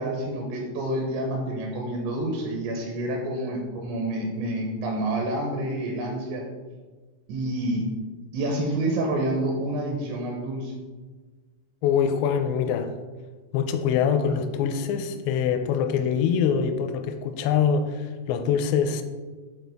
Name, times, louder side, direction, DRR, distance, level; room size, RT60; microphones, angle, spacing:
voice 1, 0.0-6.5 7.3-7.9 8.3-10.8, right 1 dB, 80° right, 1 dB, 3.0 m, -28 dB
voice 2, 11.8-12.9 13.5-19.0, left 7 dB, 85° left, 8 dB, 2.5 m, -24 dB
9.5 x 4.0 x 3.4 m, 1.4 s
omnidirectional pair, 5.5 m